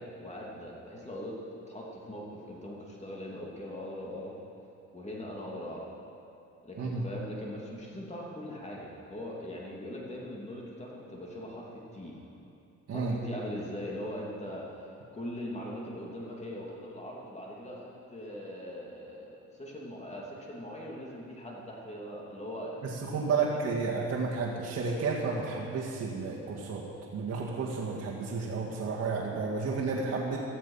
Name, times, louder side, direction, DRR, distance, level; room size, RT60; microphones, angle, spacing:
voice 1, 0.0-1.4 1.7-4.4 4.9-5.9 6.6-12.2 12.9-17.8 18.1-23.5, left 1 dB, 20° left, -3 dB, 2.9 m, -41 dB
voice 2, 22.8-26.9 27.1-30.4, right 4 dB, 55° right, -4 dB, 2.1 m, -32 dB
15.5 x 14.0 x 5.7 m, 2.7 s
cardioid pair, 90°, 30 cm